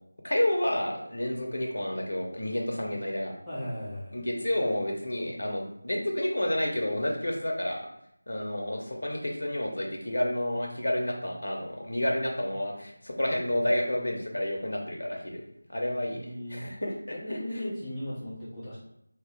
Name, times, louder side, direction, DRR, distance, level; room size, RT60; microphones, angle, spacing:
voice 1, 0.2-3.3 4.1-7.9 8.3-15.4 15.7-16.2 16.5-17.6, left 1 dB, 60° left, 0 dB, 0.8 m, -30 dB
voice 2, 3.5-4.1 16.2-16.7 17.1-18.8, left 1 dB, 10° left, -13 dB, 0.8 m, -36 dB
2.9 x 2.8 x 3.6 m, 0.76 s
figure-of-eight pair, 165°, 0 cm